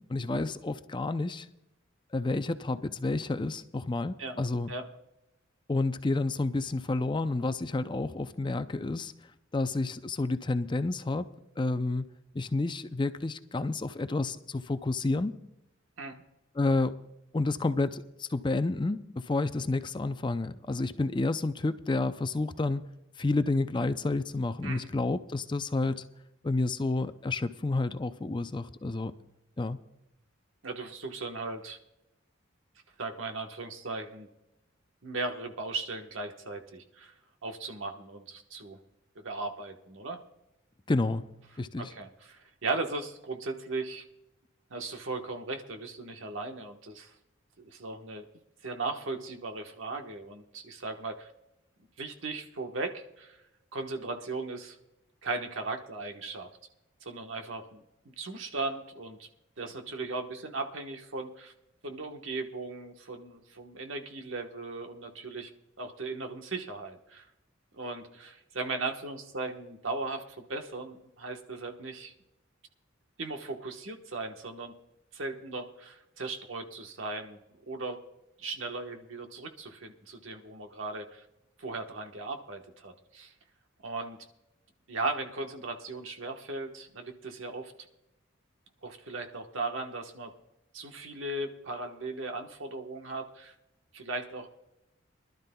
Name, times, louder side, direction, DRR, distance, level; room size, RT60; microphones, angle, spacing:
voice 1, 0.0-1.5 2.1-4.7 5.7-9.1 9.5-11.3 11.6-15.3 16.6-17.0 17.3-22.8 23.2-26.1 26.4-29.1 29.6-29.8 40.9-41.3 41.6-41.9, left 2 dB, 25° left, 0.5 m, -30 dB
voice 2, 30.6-31.8 33.0-34.3 35.0-37.1 37.4-38.8 39.1-40.2 41.8-44.0 44.7-47.1 47.6-48.3 48.6-51.3 52.0-53.4 53.7-54.8 55.2-56.5 57.0-59.3 59.6-61.5 61.8-65.5 65.8-67.3 67.7-70.2 70.5-72.1 73.2-74.7 75.1-77.4 77.7-78.0 78.4-81.2 81.6-83.3 83.8-84.2 84.9-87.7 88.8-90.3 90.7-93.5 93.9-94.5, right 3 dB, 75° right, 1.3 m, -37 dB
24.0 x 12.0 x 2.3 m
head